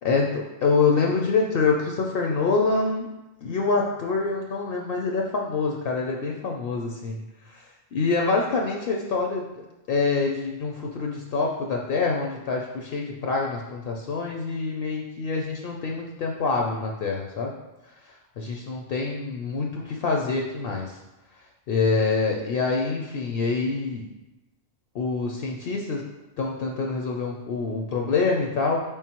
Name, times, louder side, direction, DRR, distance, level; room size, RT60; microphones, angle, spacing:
voice 1, 0.0-3.1 3.4-7.2 7.5-7.7 7.9-9.6 9.9-17.5 18.0-21.0 21.7-24.1 24.9-26.0 26.4-28.8, left 4 dB, 65° left, 0 dB, 0.7 m, -26 dB
4.7 x 3.6 x 2.9 m, 0.99 s
omnidirectional pair, 1.1 m